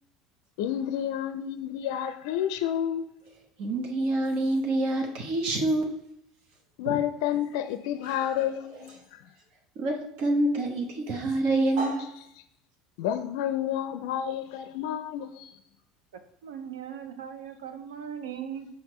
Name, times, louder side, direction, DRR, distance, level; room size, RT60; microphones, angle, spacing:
voice 1, 0.6-3.1 6.8-8.9 13.0-15.6, left 10 dB, 75° left, 9 dB, 0.4 m, -30 dB
voice 2, 3.6-5.9 6.8-7.0 8.0-8.2 8.7-8.8 9.8-12.1, right 2 dB, 60° right, 2 dB, 0.9 m, -27 dB
voice 3, 16.4-18.7, right 8 dB, 85° right, 8 dB, 0.6 m, -38 dB
5.9 x 5.1 x 3.1 m, 0.76 s
hypercardioid pair, 80°, 2 cm